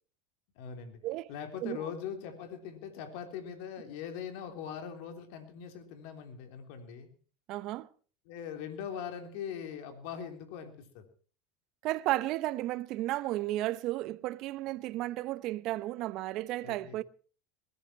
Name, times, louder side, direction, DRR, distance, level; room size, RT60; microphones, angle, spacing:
voice 1, 0.6-1.0 1.3-7.1 8.3-11.0 16.6-17.0, left 8 dB, 65° left, 3.4 m, -41 dB
voice 2, 7.5-7.9 11.8-17.0, right 16 dB, 55° right, 0.8 m, -33 dB
21.0 x 13.5 x 4.4 m
hypercardioid pair, 90°, 0 cm